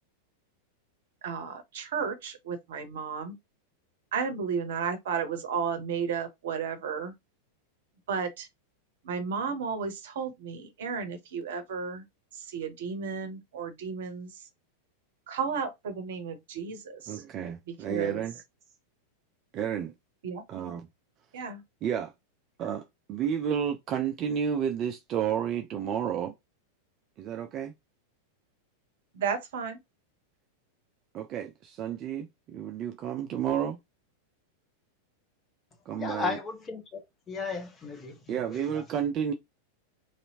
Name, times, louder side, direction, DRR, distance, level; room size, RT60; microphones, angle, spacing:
voice 1, 1.2-3.3 4.1-7.1 8.1-8.5 9.0-12.0 12.3-14.4 15.3-17.2 17.7-18.2 20.2-20.4 21.3-21.6 29.1-29.8, right 6 dB, 55° right, 0.8 m, -33 dB
voice 2, 17.1-18.3 19.5-19.9 20.5-20.8 21.8-22.1 22.6-22.8 23.1-26.3 27.2-27.7 31.1-33.8 35.9-36.4 38.3-39.3, right 8 dB, 35° right, 0.4 m, -31 dB
voice 3, 35.9-37.0 37.3-38.8, left 4 dB, 20° left, 0.9 m, -35 dB
3.2 x 2.8 x 2.8 m
figure-of-eight pair, 90°, 0 cm